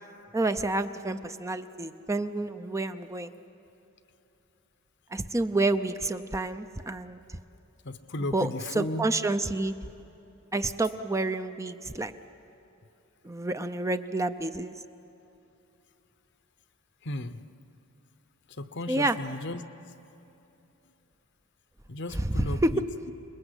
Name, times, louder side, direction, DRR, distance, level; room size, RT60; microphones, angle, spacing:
voice 1, 0.3-3.3 5.1-7.2 8.3-9.7 10.5-12.1 13.2-14.7 18.9-19.2 22.2-22.8, right 2 dB, 15° right, 9 dB, 0.6 m, -29 dB
voice 2, 7.8-9.1 17.0-17.4 18.6-19.6 21.9-22.8, left 1 dB, 55° left, 11 dB, 0.9 m, -35 dB
28.5 x 20.5 x 8.1 m, 2.9 s
head